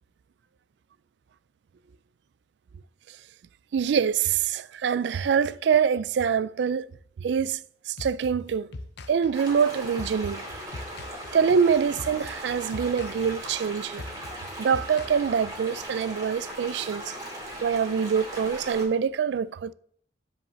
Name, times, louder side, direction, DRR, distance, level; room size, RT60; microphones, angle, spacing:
voice 1, 3.7-6.9 7.2-7.6 7.9-8.7 9.1-10.4 11.3-14.0 14.6-17.1 17.6-19.7, right 7 dB, 70° right, 0.3 m, -25 dB
sound 1, 8.0-15.8, left 2 dB, 65° left, 0.6 m, -42 dB
sound 2, 9.3-18.9, right 1 dB, 20° right, 2.2 m, -38 dB
7.8 x 5.2 x 6.8 m
head